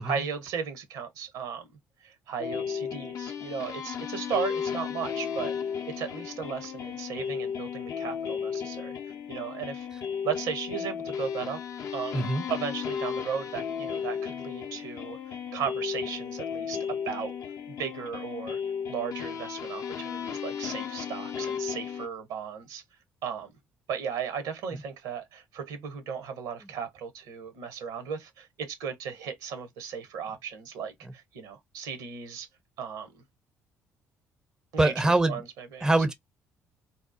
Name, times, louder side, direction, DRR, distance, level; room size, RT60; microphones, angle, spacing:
voice 1, 0.0-1.7 2.0-5.5 5.9-9.0 9.3-9.9 10.2-11.6 11.9-17.3 17.7-18.6 18.9-22.8 23.2-23.5 23.9-32.5 32.8-33.2 34.7-34.9 35.2-35.9, right 7 dB, 65° right, 0.7 m, -36 dB
sound 1, 2.4-22.1, left 7 dB, 50° left, 0.5 m, -34 dB
voice 2, 12.1-12.5 34.8-35.4 35.8-36.1, right 2 dB, 10° right, 0.5 m, -24 dB
2.7 x 2.0 x 2.4 m
figure-of-eight pair, 50°, 7 cm